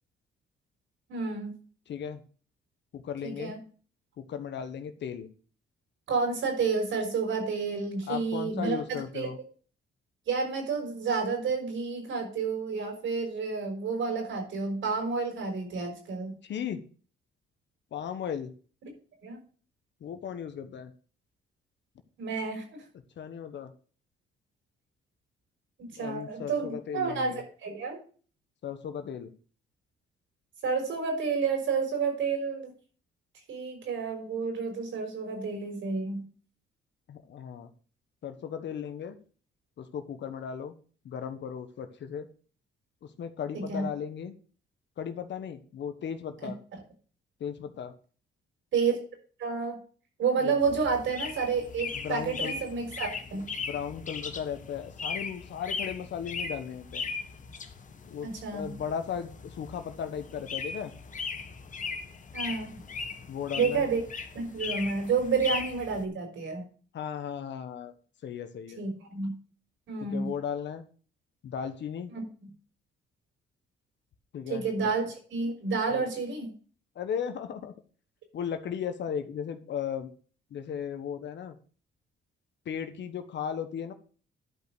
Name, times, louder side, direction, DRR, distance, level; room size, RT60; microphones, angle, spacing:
voice 1, 1.1-1.5 3.2-3.6 6.1-9.3 10.3-16.3 19.2-19.4 22.2-22.8 25.8-27.3 27.6-28.0 30.6-32.7 33.5-36.2 43.5-43.9 46.4-46.5 48.7-49.0 49.4-49.8 50.2-53.4 58.2-58.7 62.3-62.7 63.5-64.0 64.3-66.6 68.7-69.4 69.9-70.3 72.1-72.2 74.5-76.5, right 5 dB, 75° right, 2 dB, 5.9 m, -30 dB
voice 2, 1.9-2.2 2.9-3.6 4.2-5.3 8.1-9.4 16.4-16.8 17.9-18.5 20.0-20.9 23.2-23.7 25.9-27.4 28.6-29.3 37.1-37.7 38.2-39.2 39.8-40.7 41.0-42.3 43.0-44.3 45.0-46.6 47.4-47.9 50.4-50.5 51.9-52.5 53.6-57.1 58.1-60.9 63.3-63.9 66.9-67.9 68.2-68.8 70.1-70.8 71.4-72.1 74.3-75.0 75.9-76.1 76.9-77.7 78.3-80.1 80.5-81.5 82.6-83.9, left 8 dB, 65° left, 8 dB, 1.3 m, -36 dB
sound 1, 50.6-66.0, left 5 dB, 40° left, 1.4 m, -38 dB
11.5 x 5.3 x 6.3 m, 0.41 s
cardioid pair, 90°, 20 cm